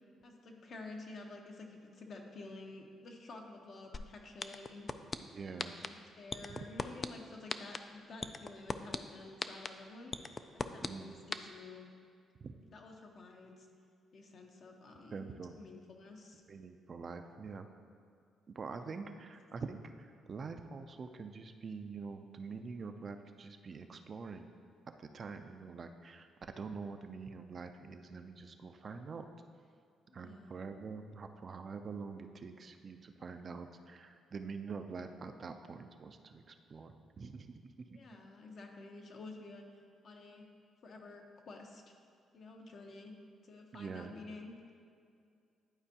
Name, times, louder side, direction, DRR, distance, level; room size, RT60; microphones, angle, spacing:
voice 1, 0.2-4.9 5.5-11.9 12.7-13.7 14.1-15.3 15.6-16.4 18.7-19.2 30.1-30.5 37.9-39.6 40.0-40.5 40.8-41.8 42.3-43.1 43.4-44.5, left 3 dB, 55° left, 2 dB, 0.9 m, -51 dB
sound 1, 3.9-4.0 4.4-5.2 5.6-5.9 6.3-7.1 7.5-7.8 8.2-9.0 9.4-9.7 10.1-10.9 11.3-11.4, left 4 dB, 35° left, 0.3 m, -35 dB
voice 2, 5.3-5.9 6.5-6.6 10.8-11.2 12.4-12.5 15.1-15.6 16.5-17.7 18.5-24.5 24.9-29.3 30.1-38.0 43.7-44.1, right 5 dB, 45° right, 7 dB, 0.4 m, -45 dB
11.0 x 4.4 x 2.8 m, 2.4 s
cardioid pair, 90°, 0 cm